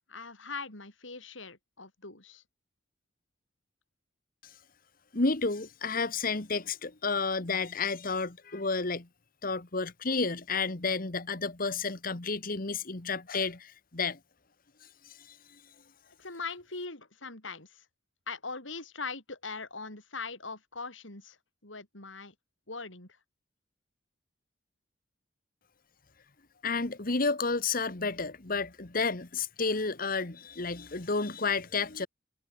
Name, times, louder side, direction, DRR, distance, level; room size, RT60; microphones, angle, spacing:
voice 1, 0.1-2.4 16.2-17.8 18.3-21.4 21.6-22.3 22.7-23.1, left 4 dB, 80° left, 6.1 m, -41 dB
voice 2, 5.1-9.1 9.4-14.2 15.3-15.4 26.6-32.1, left 4 dB, 45° left, 1.5 m, -31 dB
head